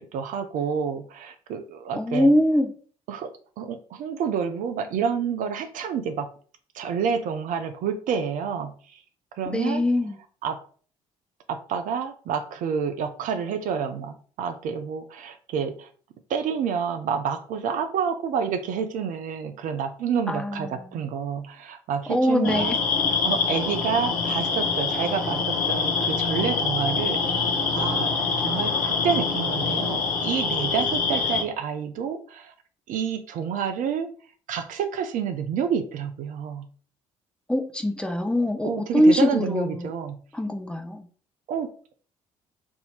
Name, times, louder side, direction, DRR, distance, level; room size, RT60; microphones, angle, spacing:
voice 1, 0.0-2.3 3.1-3.3 3.6-6.3 6.7-9.0 9.3-9.9 10.4-10.6 11.5-15.9 16.3-22.8 23.1-28.1 28.4-32.5 32.9-34.1 34.5-36.7 38.6-40.2 41.5-41.9, right 7 dB, 50° right, 8 dB, 0.5 m, -29 dB
voice 2, 2.0-2.7 9.5-10.2 20.3-20.9 22.1-22.8 37.5-39.9 40.3-41.1, equal, 5° left, 4 dB, 0.7 m, -22 dB
sound 1, 22.4-31.4, left 5 dB, 60° left, 0.9 m, -25 dB
3.4 x 2.7 x 4.1 m, 0.42 s
figure-of-eight pair, 50°, 17 cm